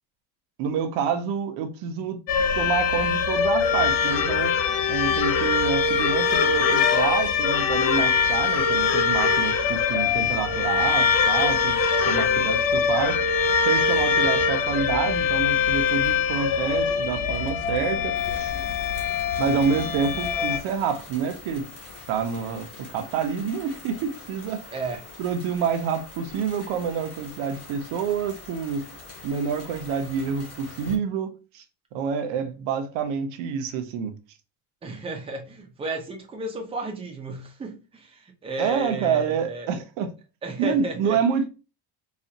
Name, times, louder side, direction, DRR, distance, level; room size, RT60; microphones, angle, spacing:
voice 1, 0.6-2.2 2.6-4.6 4.9-11.8 12.1-13.2 13.6-18.5 19.4-21.7 22.1-24.6 25.2-28.8 29.2-31.6 31.9-34.1 38.6-40.1 40.6-41.5, right 6 dB, 75° right, 0.8 m, -27 dB
sound 1, 2.3-20.6, left 6 dB, 85° left, 0.8 m, -23 dB
voice 2, 12.4-12.9 24.7-25.0 34.8-39.7 40.4-41.4, right 2 dB, 15° right, 0.5 m, -34 dB
sound 2, 18.1-31.0, left 2 dB, 30° left, 1.1 m, -43 dB
4.1 x 2.4 x 2.7 m
cardioid pair, 180°, 45 cm